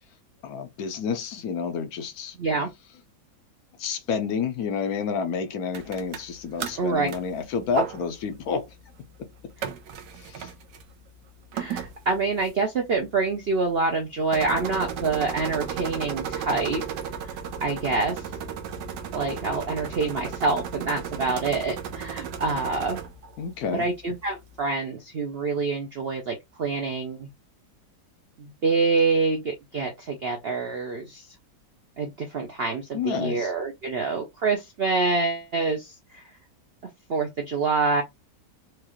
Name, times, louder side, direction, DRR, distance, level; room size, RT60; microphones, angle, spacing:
voice 1, 0.4-2.4 3.8-8.7 10.2-10.5 23.4-23.9 32.9-33.5, left 6 dB, 70° left, 1.0 m, -29 dB
voice 2, 2.4-2.7 6.8-7.1 11.5-16.8 17.6-18.2 19.1-23.0 23.7-27.3 28.4-31.3 32.0-36.2 37.1-38.0, right 3 dB, 65° right, 0.6 m, -26 dB
sound 1, 5.7-24.6, right 7 dB, 85° right, 1.4 m, -36 dB
4.7 x 2.4 x 3.0 m
omnidirectional pair, 1.9 m